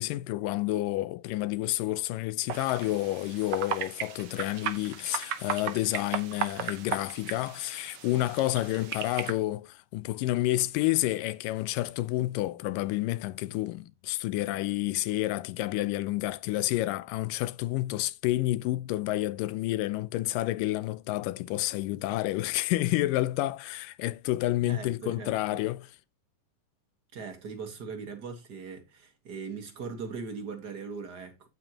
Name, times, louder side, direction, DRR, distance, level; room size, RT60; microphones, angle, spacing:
voice 1, 0.0-26.0, left 17 dB, 85° left, 2.3 m, -29 dB
sound 1, 2.5-9.3, right 9 dB, 75° right, 1.2 m, -36 dB
voice 2, 24.6-25.6 27.1-31.5, right 5 dB, 50° right, 1.3 m, -40 dB
9.3 x 8.7 x 2.9 m
omnidirectional pair, 3.8 m